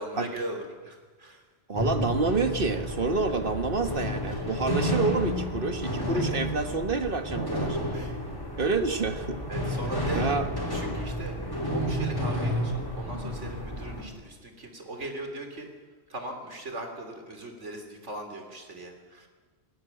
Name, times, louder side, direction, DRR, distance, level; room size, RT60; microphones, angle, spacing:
voice 1, 0.0-1.5 4.2-4.4 6.0-6.4 7.9-8.2 8.5-8.7 9.5-10.3 10.7-11.4 11.7-15.7 16.1-19.3, right 1 dB, 85° right, 4 dB, 3.7 m, -39 dB
sound 1, 1.7-14.0, equal, 20° left, 4.4 m, -31 dB
voice 2, 1.7-8.0 8.6-9.4 10.1-10.5, right 3 dB, 50° right, 8 dB, 1.6 m, -28 dB
19.0 x 18.0 x 9.1 m, 1.4 s
omnidirectional pair, 1.2 m